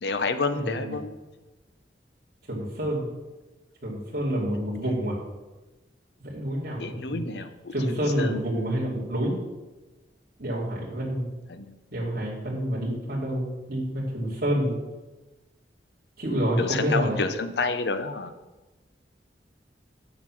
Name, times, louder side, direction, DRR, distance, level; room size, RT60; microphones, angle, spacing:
voice 1, 0.0-1.1 6.8-7.7 8.2-8.4 11.5-11.7 16.6-18.3, left 4 dB, 70° left, 10 dB, 0.7 m, -29 dB
voice 2, 0.5-1.0 2.5-3.1 3.8-5.2 6.2-7.3 7.7-9.3 10.4-11.3 11.9-14.7 16.2-17.2, equal, 55° right, -7 dB, 2.7 m, -28 dB
7.9 x 6.0 x 6.2 m, 1.2 s
head